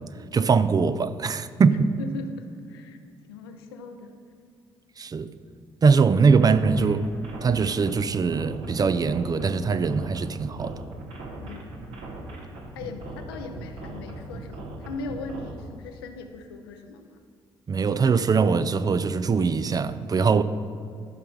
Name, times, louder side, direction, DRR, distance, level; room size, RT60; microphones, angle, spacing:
voice 1, 0.3-1.9 5.0-5.3 5.8-7.1 7.4-10.8 17.7-20.4, right 5 dB, 30° right, 0.5 m, -22 dB
voice 2, 2.0-3.0 3.3-4.2 11.4-11.9 12.7-17.2, left 3 dB, 75° left, 0.7 m, -39 dB
sound 1, 6.2-15.5, right 2 dB, 60° right, 1.5 m, -39 dB
13.0 x 5.7 x 5.4 m
figure-of-eight pair, 40°, 13 cm